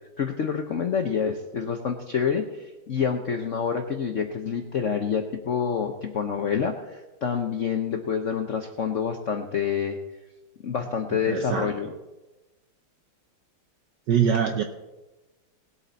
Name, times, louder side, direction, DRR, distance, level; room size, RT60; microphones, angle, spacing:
voice 1, 0.2-10.0 10.6-11.9, left 7 dB, 80° left, 5 dB, 0.6 m, -27 dB
voice 2, 11.3-11.7 14.1-14.6, right 8 dB, 65° right, 6 dB, 1.1 m, -23 dB
19.5 x 8.3 x 4.0 m, 1.1 s
omnidirectional pair, 2.4 m